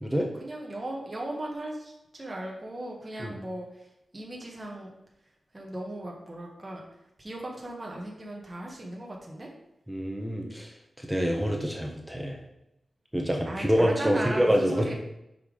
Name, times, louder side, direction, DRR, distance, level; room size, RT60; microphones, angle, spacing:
voice 1, 0.4-3.9 4.1-4.9 5.5-6.8 7.2-9.5 13.4-14.9, right 1 dB, 20° right, -2 dB, 1.5 m, -37 dB
voice 2, 9.9-10.7 11.0-12.4 13.1-14.9, equal, 5° right, 1 dB, 1.0 m, -26 dB
6.0 x 5.6 x 5.0 m, 0.85 s
wide cardioid pair, 135°, 0 cm